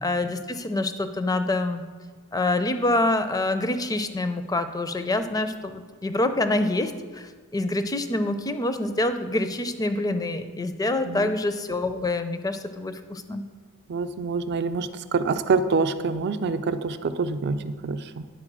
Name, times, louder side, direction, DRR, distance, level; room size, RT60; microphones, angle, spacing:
voice 1, 0.0-1.8 2.3-13.4, left 2 dB, 15° left, 9 dB, 0.4 m, -26 dB
voice 2, 13.9-18.2, right 4 dB, 50° right, 11 dB, 0.4 m, -26 dB
9.9 x 4.1 x 6.1 m, 1.5 s
head